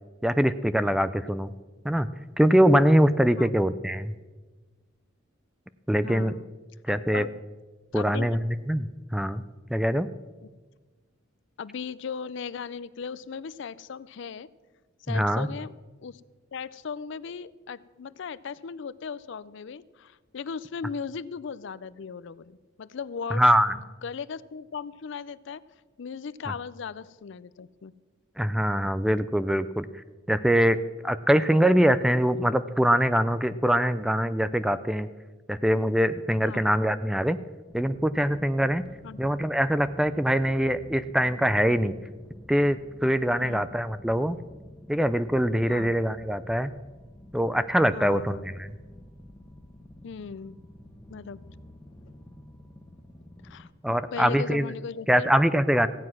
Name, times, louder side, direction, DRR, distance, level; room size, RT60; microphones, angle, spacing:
voice 1, 0.2-1.5 1.8-2.1 2.4-4.1 5.9-6.3 6.9-7.2 7.9-9.4 9.7-10.1 15.1-15.5 23.3-23.7 28.4-29.9 30.3-30.8 31.0-35.1 35.5-37.4 37.7-38.8 39.2-41.9 42.5-44.4 44.9-46.7 47.3-48.7 53.8-54.7 55.1-55.9, equal, 5° right, 13 dB, 0.4 m, -23 dB
voice 2, 6.0-6.5 6.9-7.4 7.9-8.4 11.6-14.5 15.1-15.7 16.0-16.2 16.5-23.4 23.7-25.6 26.0-27.9 36.4-36.6 39.0-39.2 43.4-43.7 45.7-45.9 47.9-48.4 50.0-50.6 51.1-51.4 53.4-53.7 54.1-55.3, left 6 dB, 65° left, 18 dB, 0.4 m, -37 dB
sound 1, 37.7-53.7, left 1 dB, 15° left, 1.1 m, -49 dB
15.5 x 9.5 x 6.0 m, 1.3 s
head